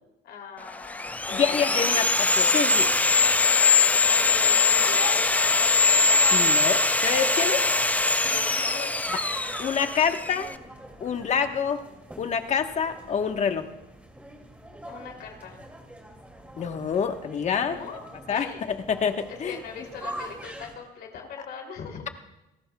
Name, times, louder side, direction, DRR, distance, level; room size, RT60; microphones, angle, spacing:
voice 1, 0.2-2.0 3.5-3.9 4.3-5.1 8.2-9.0 14.9-15.6 17.6-18.0 18.3-18.6 19.3-22.0, left 6 dB, 70° left, 2 dB, 3.0 m, -40 dB
Sawing, 0.7-10.5, left 3 dB, 10° left, 0.5 m, -22 dB
sound 1, 1.0-20.8, right 1 dB, 10° right, 2.5 m, -43 dB
voice 2, 1.3-2.9 6.3-7.6 9.6-10.5 11.0-11.8 12.2-13.7 16.6-17.8 18.3-19.6, left 7 dB, 45° left, 6 dB, 1.2 m, -27 dB
27.5 x 18.5 x 2.3 m, 0.95 s
cardioid pair, 110°, 17 cm